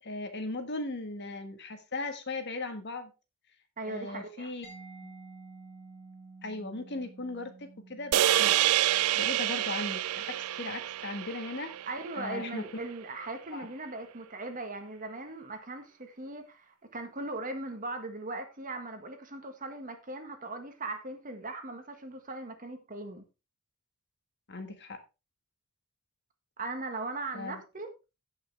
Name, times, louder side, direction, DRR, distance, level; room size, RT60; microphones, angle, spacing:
voice 1, 0.0-3.1 3.9-4.7 5.0-5.1 6.4-8.5 9.1-11.7 12.2-12.8 13.5-13.7 24.5-25.0 27.3-27.6, left 2 dB, 55° left, 1.6 m, -38 dB
voice 2, 3.8-4.5 11.8-23.2 26.6-27.9, right 2 dB, 40° right, 1.7 m, -39 dB
Mallet percussion, 4.6-12.2, right 3 dB, 15° left, 4.4 m, -52 dB
sound 1, 8.1-12.5, right 13 dB, 85° right, 0.4 m, -28 dB
15.5 x 5.7 x 3.4 m
head